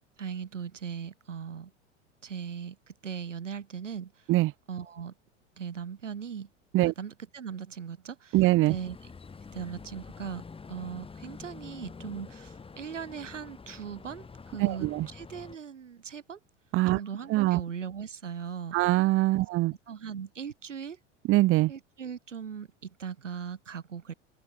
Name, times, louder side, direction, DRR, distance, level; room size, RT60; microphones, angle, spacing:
voice 1, 0.2-1.7 2.2-4.2 4.7-5.1 5.6-6.5 6.8-8.4 8.7-9.0 9.5-16.4 16.9-18.8 19.3-19.5 19.9-21.0 21.7-24.1, right 7 dB, 80° right, 2.1 m, -39 dB
voice 2, 8.3-8.7 14.6-15.1 16.7-17.0 17.3-17.6 18.7-19.7 21.3-21.7, right 19 dB, 35° right, 0.8 m, -23 dB
sound 1, 8.7-15.6, left 4 dB, 15° left, 2.7 m, -47 dB
figure-of-eight pair, 80°, 36 cm